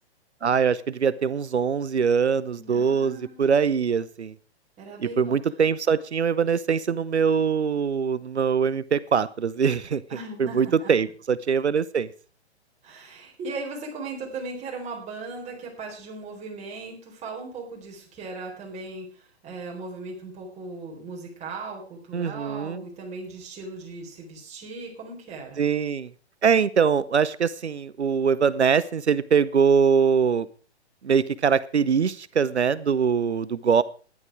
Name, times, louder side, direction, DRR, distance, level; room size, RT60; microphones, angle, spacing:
voice 1, 0.4-4.3 5.2-10.0 10.4-12.1 22.1-22.8 25.6-26.1 26.4-30.5 31.0-33.8, right 6 dB, 80° right, 18 dB, 0.8 m, -23 dB
voice 2, 2.6-3.4 4.8-5.4 10.1-10.9 12.8-25.6, right 3 dB, 20° right, 0 dB, 4.3 m, -38 dB
13.5 x 11.0 x 4.7 m, 0.37 s
figure-of-eight pair, 125°, 33 cm